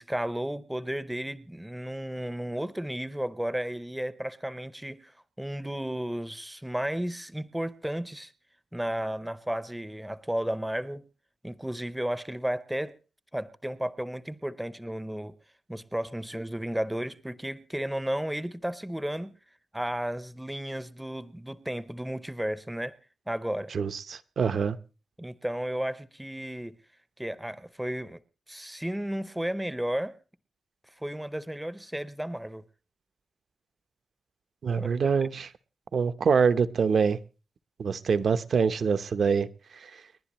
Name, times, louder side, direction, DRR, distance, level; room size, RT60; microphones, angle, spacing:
voice 1, 0.0-5.1 5.4-8.3 8.7-11.0 11.4-13.0 13.3-15.3 15.7-19.3 19.7-22.9 23.3-23.7 25.2-26.8 27.2-28.2 28.5-30.2 31.0-32.6 34.8-34.9, right 1 dB, 5° right, 15 dB, 0.6 m, -33 dB
voice 2, 23.7-24.8 34.6-35.5 35.9-37.2 37.8-39.5 39.8-39.9, right 6 dB, 60° right, 13 dB, 0.8 m, -25 dB
30.0 x 11.0 x 3.0 m, 0.33 s
wide cardioid pair, 155°, 0 cm